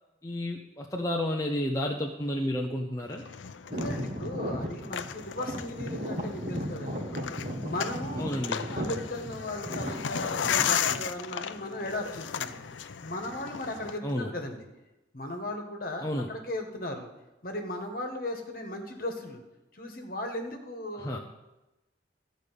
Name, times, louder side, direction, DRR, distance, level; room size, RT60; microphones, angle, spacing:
voice 1, 0.2-3.2 8.2-8.7 14.0-14.3 16.0-16.3 20.9-21.2, left 1 dB, 20° left, 0 dB, 0.7 m, -31 dB
sound 1, 3.1-14.0, left 8 dB, 90° left, 0.5 m, -35 dB
voice 2, 3.7-7.3 7.6-12.6 13.0-14.6 15.1-17.1 17.4-19.4 19.7-21.2, left 1 dB, 50° left, 3 dB, 1.6 m, -37 dB
sound 2, 3.7-11.1, equal, 45° right, 1.5 m, -36 dB
13.0 x 5.2 x 8.3 m, 0.99 s
head